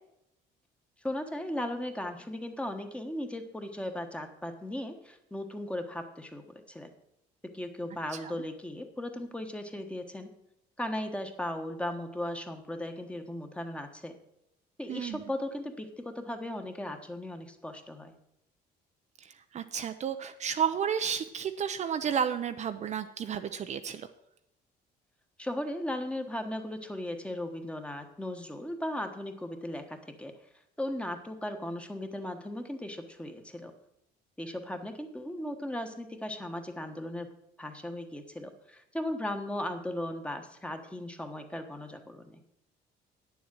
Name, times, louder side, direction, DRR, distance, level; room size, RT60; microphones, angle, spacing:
voice 1, 1.0-6.9 7.5-10.3 10.8-14.2 14.8-18.2 25.4-30.3 30.8-33.7 34.4-37.3 37.6-42.4, left 1 dB, 5° left, 6 dB, 1.3 m, -37 dB
voice 2, 14.9-15.2 19.2-24.1, right 8 dB, 45° right, 9 dB, 0.6 m, -32 dB
9.2 x 7.2 x 7.6 m, 0.82 s
cardioid pair, 110°, 17 cm